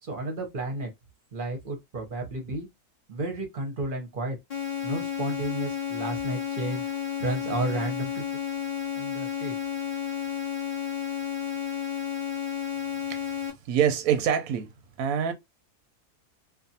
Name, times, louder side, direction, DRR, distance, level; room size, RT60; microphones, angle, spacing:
voice 1, 0.1-0.9 1.3-2.7 3.1-4.4 4.8-8.2 8.9-9.5, right 2 dB, 40° right, 0.8 m, -32 dB
sound 1, 4.5-13.5, left 9 dB, 50° left, 0.4 m, -32 dB
voice 2, 13.7-14.7 15.0-15.3, right 9 dB, 75° right, 1.0 m, -25 dB
2.4 x 2.4 x 2.7 m
omnidirectional pair, 1.7 m